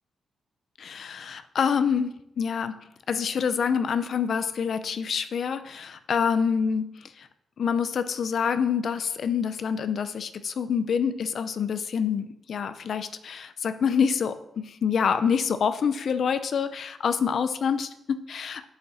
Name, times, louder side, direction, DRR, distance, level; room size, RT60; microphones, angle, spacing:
voice 1, 0.8-2.7 3.1-7.3 7.6-18.7, left 6 dB, 50° left, 11 dB, 0.5 m, -26 dB
8.6 x 7.3 x 4.2 m, 0.82 s
wide cardioid pair, 160°, 0 cm